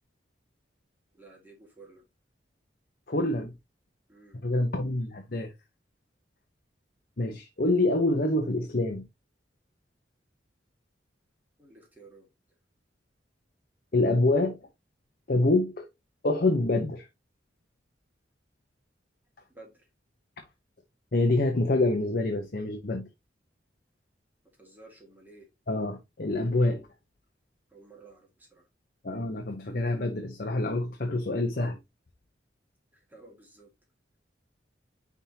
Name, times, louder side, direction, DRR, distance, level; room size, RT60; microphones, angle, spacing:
voice 1, 1.1-2.0 4.1-4.4 11.6-12.3 19.5-19.9 24.6-25.5 27.7-28.7 32.9-33.7, right 3 dB, 10° right, 2.1 m, -53 dB
voice 2, 3.1-3.5 4.4-5.5 7.2-9.0 13.9-14.6 15.3-15.9 16.2-17.1 21.1-23.1 25.7-26.9 29.0-31.8, left 2 dB, 55° left, 0.9 m, -26 dB
9.7 x 3.6 x 2.8 m
head